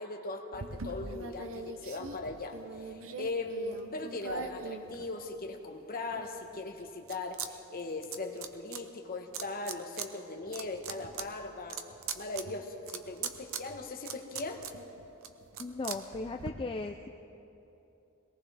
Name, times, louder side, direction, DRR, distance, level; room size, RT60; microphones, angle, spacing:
voice 1, 0.0-11.8 12.1-14.6, left 2 dB, 45° left, 4 dB, 1.3 m, -39 dB
sound 1, 0.5-5.6 6.1-7.5 7.7-8.8 9.3-10.1 10.4-16.5, right 6 dB, 70° right, 0.8 m, -42 dB
voice 2, 15.6-17.1, left 3 dB, 25° left, 4 dB, 0.4 m, -37 dB
22.0 x 18.5 x 3.4 m, 2.9 s
head